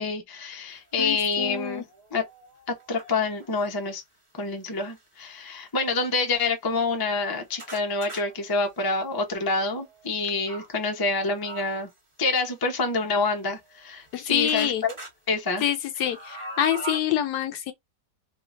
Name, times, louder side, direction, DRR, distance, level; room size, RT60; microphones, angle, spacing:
voice 1, 0.0-1.9 2.1-2.2 2.9-4.0 4.4-11.9 12.2-14.9 15.3-15.7, left 3 dB, 30° left, 0.4 m, -27 dB
voice 2, 1.0-1.8 14.1-14.8 15.6-17.7, left 10 dB, 70° left, 1.0 m, -26 dB
sound 1, 1.0-1.1 1.7-3.7 4.6-5.0 5.7-5.8 6.0-6.1 6.7-10.7 11.4-12.0 12.9-14.2 14.5-15.1 15.5-17.0, right 3 dB, 20° right, 1.2 m, -43 dB
3.6 x 2.8 x 2.5 m
omnidirectional pair, 1.9 m